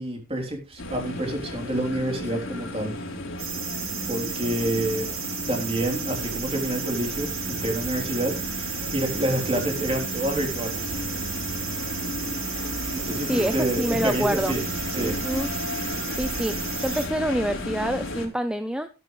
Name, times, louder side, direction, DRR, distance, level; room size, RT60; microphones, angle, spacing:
voice 1, 0.0-2.9 4.1-5.1 5.5-10.9 12.9-14.6 14.9-15.1, right 1 dB, 25° right, 2 dB, 3.6 m, -28 dB
sound 1, 0.8-18.3, left 1 dB, 65° left, 4.1 m, -33 dB
sound 2, 3.4-17.1, right 8 dB, 75° right, 4.2 m, -34 dB
voice 2, 13.3-14.6 15.0-15.5 16.1-18.9, equal, 5° right, 9 dB, 0.6 m, -27 dB
13.5 x 12.5 x 3.2 m, 0.30 s
head